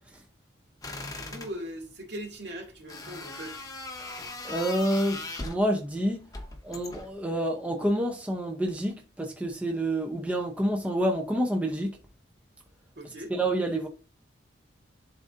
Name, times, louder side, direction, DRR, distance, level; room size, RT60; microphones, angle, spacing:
sound 1, 0.8-1.5 2.9-5.7 6.3-7.2, left 3 dB, 20° left, 0.9 m, -39 dB
voice 1, 0.9-3.6 13.0-13.3, equal, 60° right, 2.3 m, -40 dB
voice 2, 4.4-6.3 6.6-12.0 13.3-13.9, right 1 dB, 5° right, 0.6 m, -28 dB
11.0 x 3.8 x 2.6 m
head